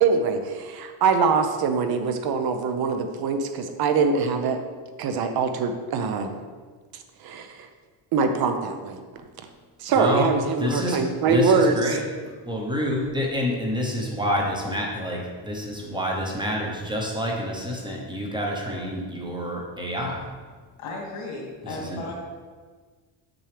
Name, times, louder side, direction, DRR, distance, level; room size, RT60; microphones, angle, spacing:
voice 1, 0.0-4.6 5.0-6.3 7.2-7.5 8.1-9.0 9.8-11.7, right 5 dB, 50° right, 7 dB, 0.6 m, -23 dB
voice 2, 9.9-10.3 10.6-11.0 11.3-20.3 21.9-22.0, equal, 10° right, -2 dB, 0.8 m, -28 dB
voice 3, 20.8-22.1, left 2 dB, 85° left, -2 dB, 2.2 m, -35 dB
6.9 x 6.1 x 3.3 m, 1.5 s
cardioid pair, 175°, 49 cm